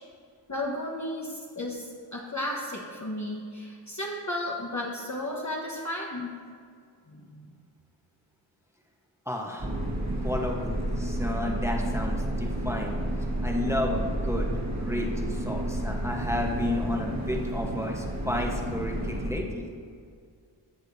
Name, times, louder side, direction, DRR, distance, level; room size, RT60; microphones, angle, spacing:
voice 1, 0.5-6.3 7.1-7.4, left 1 dB, 35° left, -3 dB, 1.2 m, -34 dB
voice 2, 9.3-9.9 10.2-13.0 13.4-14.5 14.8-19.7, left 1 dB, 5° right, 0 dB, 1.0 m, -32 dB
sound 1, 9.6-19.3, right 1 dB, 35° right, 1.6 m, -30 dB
15.0 x 6.6 x 2.7 m, 2.2 s
wide cardioid pair, 40°, 49 cm